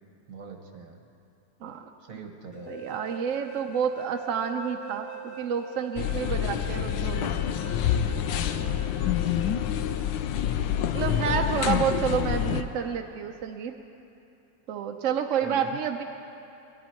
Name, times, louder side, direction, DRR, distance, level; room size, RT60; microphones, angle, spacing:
voice 1, 0.3-1.1 2.0-3.0 8.5-9.1 15.4-15.8, right 5 dB, 50° right, 3 dB, 1.6 m, -43 dB
voice 2, 1.6-2.2 2.7-7.3 10.9-13.7 14.7-16.0, right 7 dB, 65° right, 4 dB, 0.8 m, -29 dB
sound 1, 2.5-10.1, right 3 dB, 60° left, 1.7 m, -43 dB
sound 2, 6.0-12.6, left 10 dB, 85° left, 1.3 m, -27 dB
22.0 x 12.0 x 4.5 m, 2.8 s
omnidirectional pair, 2.0 m